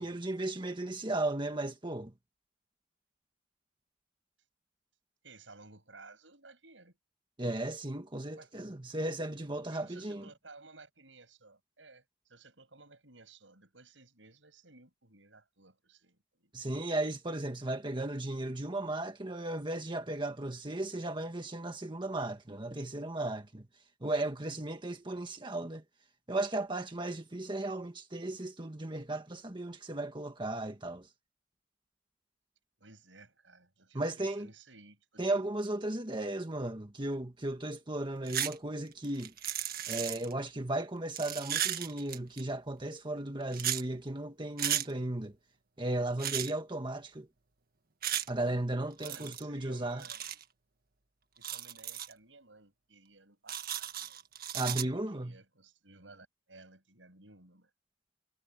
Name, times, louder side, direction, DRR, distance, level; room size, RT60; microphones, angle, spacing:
voice 1, 0.0-2.1 7.4-10.3 16.5-23.6 24.0-25.8 26.3-31.1 33.9-34.5 35.2-39.3 39.9-45.3 45.8-47.3 48.3-50.0 54.5-55.4, right 2 dB, 25° right, 1.7 m, -35 dB
voice 2, 5.2-7.0 8.4-8.5 9.7-16.5 32.8-35.1 35.3-35.5 49.0-50.3 51.4-54.2 54.9-57.7, right 3 dB, 85° right, 7.6 m, -56 dB
sound 1, 38.3-38.6 38.9-40.3 41.1-42.4 43.5-43.8 44.6-44.9 46.2-46.5 48.0-48.3 49.0-49.4 50.0-50.4 51.4-52.1 53.5-54.8, right 10 dB, 55° right, 1.6 m, -35 dB
head